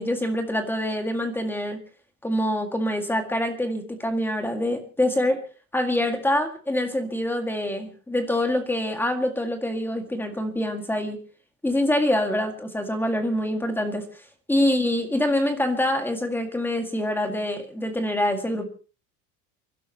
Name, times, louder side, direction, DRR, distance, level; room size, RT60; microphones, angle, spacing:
voice 1, 0.0-1.8 2.2-5.4 5.7-11.2 11.6-14.1 14.5-18.6, left 1 dB, 5° left, 5 dB, 2.0 m, -25 dB
30.0 x 12.0 x 2.9 m, 0.36 s
cardioid pair, 160°, 36 cm